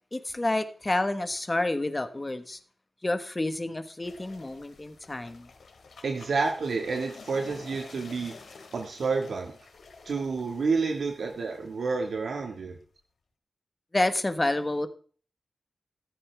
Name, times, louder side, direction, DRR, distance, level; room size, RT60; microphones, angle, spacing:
voice 1, 0.1-2.6 3.0-5.5 13.9-14.9, left 2 dB, 20° left, 9 dB, 1.3 m, -29 dB
sound 1, 4.0-12.9, left 4 dB, 80° left, 2.5 m, -50 dB
voice 2, 6.0-8.4 8.7-9.5 10.1-12.8, right 4 dB, 70° right, 2 dB, 1.8 m, -29 dB
14.0 x 13.0 x 3.4 m, 0.42 s
wide cardioid pair, 130°, 0 cm